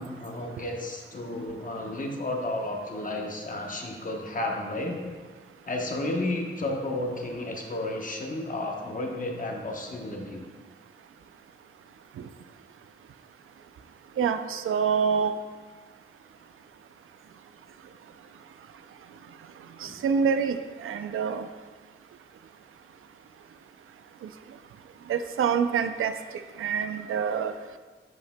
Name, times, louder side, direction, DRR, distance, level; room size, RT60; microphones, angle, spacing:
voice 1, 0.0-5.1 5.6-10.5 19.9-20.0, left 1 dB, 40° left, 1 dB, 1.0 m, -32 dB
voice 2, 14.2-15.3 20.0-20.6 20.8-21.4 25.1-26.1 26.6-27.5, right 6 dB, 85° right, 10 dB, 0.4 m, -25 dB
11.0 x 5.4 x 2.2 m, 1.4 s
wide cardioid pair, 105°, 21 cm